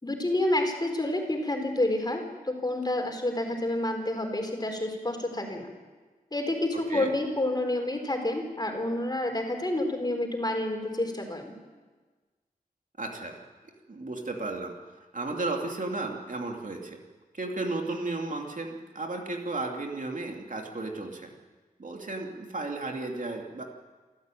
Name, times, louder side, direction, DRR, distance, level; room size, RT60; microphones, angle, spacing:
voice 1, 0.0-5.7 6.3-11.5, left 1 dB, 25° left, 3 dB, 4.7 m, -29 dB
voice 2, 13.0-13.4 13.9-17.0 17.3-21.3 21.8-23.6, right 2 dB, 60° right, 1 dB, 2.9 m, -34 dB
27.5 x 14.0 x 9.2 m, 1.3 s
wide cardioid pair, 75°, 15 cm